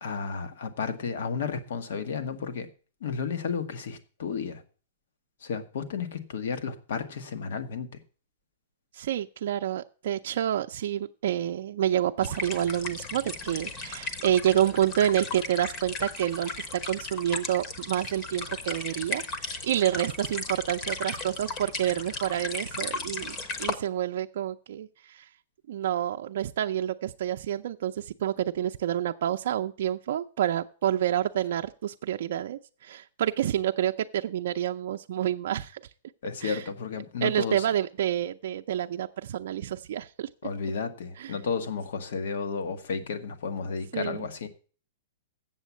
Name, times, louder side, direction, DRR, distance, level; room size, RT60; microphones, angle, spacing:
voice 1, 0.0-2.7 3.0-4.6 5.4-8.0 36.2-37.7 40.4-44.5, left 5 dB, 70° left, 1.3 m, -32 dB
voice 2, 8.9-25.2 25.7-35.8 36.4-36.6 37.2-40.3 41.2-41.3 43.9-44.3, right 11 dB, 65° right, 0.4 m, -28 dB
sound 1, 12.2-23.7, left 3 dB, 25° left, 0.9 m, -36 dB
7.6 x 7.3 x 8.2 m
supercardioid pair, 165°, 0 cm